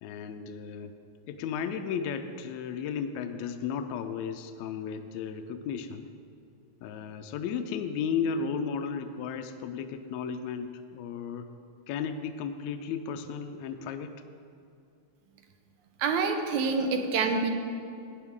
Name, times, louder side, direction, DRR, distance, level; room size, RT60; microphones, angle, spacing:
voice 1, 0.0-0.9 1.3-6.1 6.8-11.5 11.9-14.1, left 6 dB, 80° left, 7 dB, 1.8 m, -34 dB
voice 2, 16.0-17.5, right 4 dB, 80° right, 4 dB, 2.3 m, -26 dB
17.0 x 9.5 x 3.6 m, 2.4 s
omnidirectional pair, 3.4 m